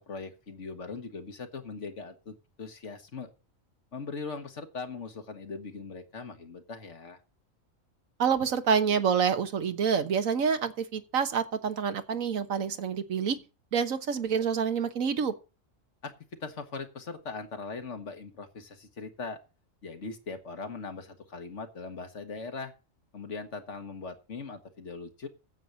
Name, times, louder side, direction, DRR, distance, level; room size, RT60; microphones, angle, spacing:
voice 1, 0.0-3.3 3.9-7.2 16.0-16.1 16.4-19.4 19.8-22.7 23.1-25.3, left 4 dB, 65° left, 1.8 m, -40 dB
voice 2, 8.2-13.4 13.7-15.3, right 6 dB, 90° right, 1.6 m, -27 dB
9.3 x 7.9 x 6.8 m
omnidirectional pair, 1.4 m